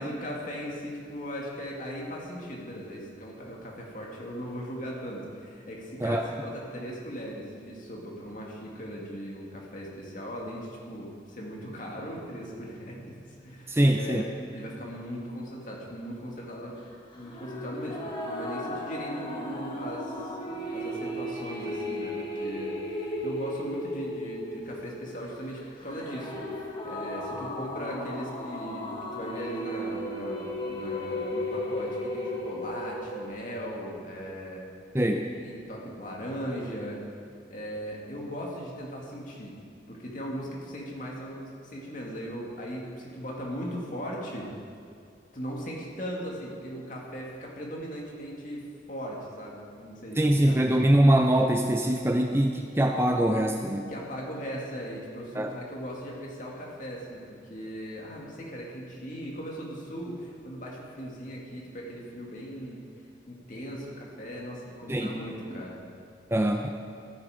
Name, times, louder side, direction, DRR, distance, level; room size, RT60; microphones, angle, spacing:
voice 1, 0.0-14.2 14.5-16.8 17.1-34.6 35.4-37.0 37.5-39.5 39.9-44.5 45.3-50.6 53.9-62.8 63.3-65.8, equal, 45° left, -3 dB, 2.4 m, -38 dB
voice 2, 13.7-14.3 34.9-35.3 50.2-53.9 55.4-55.6 64.9-65.2 65.5-65.6 66.3-66.7, right 1 dB, 15° right, 4 dB, 0.5 m, -23 dB
sound 1, 17.2-33.2, left 1 dB, 25° left, 1.5 m, -35 dB
14.5 x 10.0 x 5.1 m, 2.4 s
head